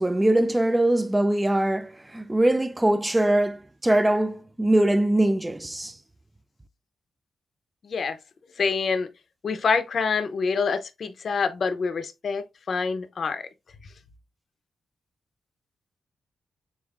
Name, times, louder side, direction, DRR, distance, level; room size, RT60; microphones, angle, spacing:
voice 1, 0.0-5.9, right 1 dB, 10° right, 0.3 m, -22 dB
voice 2, 7.8-8.2 8.6-9.1 9.4-13.5, left 5 dB, 55° left, 0.6 m, -26 dB
6.9 x 2.5 x 2.4 m
cardioid pair, 105°, 0 cm